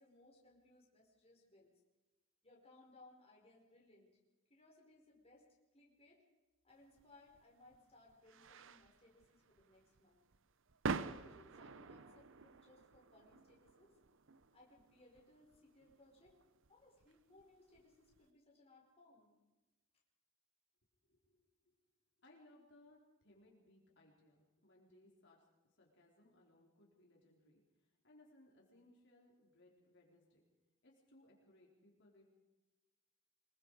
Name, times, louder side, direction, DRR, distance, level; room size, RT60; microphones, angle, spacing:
voice 1, 0.0-1.7 2.4-4.2 4.5-6.2 6.6-10.2 10.9-14.0 14.5-16.3 16.7-19.4, left 2 dB, 30° left, -2 dB, 4.8 m, -65 dB
sound 1, 6.9-18.2, right 4 dB, 60° right, 0.8 m, -48 dB
voice 2, 21.0-21.7 22.2-25.5 25.8-30.4 30.8-32.3, left 1 dB, 55° left, -2 dB, 4.1 m, -67 dB
25.0 x 22.0 x 4.9 m, 1.1 s
head